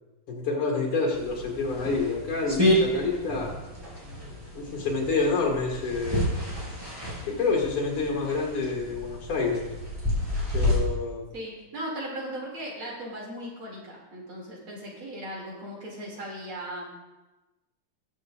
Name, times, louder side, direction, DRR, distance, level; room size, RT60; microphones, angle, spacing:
voice 1, 0.3-3.5 4.5-6.3 7.3-9.7 10.5-11.3, left 3 dB, 75° left, 0 dB, 2.8 m, -28 dB
sound 1, 1.1-10.8, left 1 dB, 10° right, 3.5 m, -30 dB
voice 2, 11.3-16.9, right 1 dB, 70° right, -3 dB, 3.5 m, -37 dB
19.5 x 7.6 x 2.5 m, 1.1 s
omnidirectional pair, 2.4 m